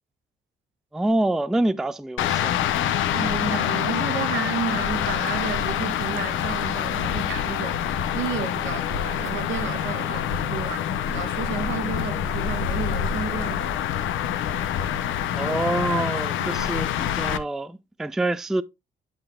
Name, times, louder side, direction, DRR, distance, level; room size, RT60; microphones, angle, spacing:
voice 1, 0.9-2.6 10.5-10.8 15.4-18.6, right 2 dB, ahead, 0.3 m, -26 dB
sound 1, 2.2-17.4, left 10 dB, 80° left, 0.7 m, -26 dB
voice 2, 3.1-7.8 8.1-10.8 11.1-13.7 16.4-16.6, right 7 dB, 70° right, 1.2 m, -32 dB
8.9 x 5.8 x 2.4 m
cardioid pair, 90°, 20 cm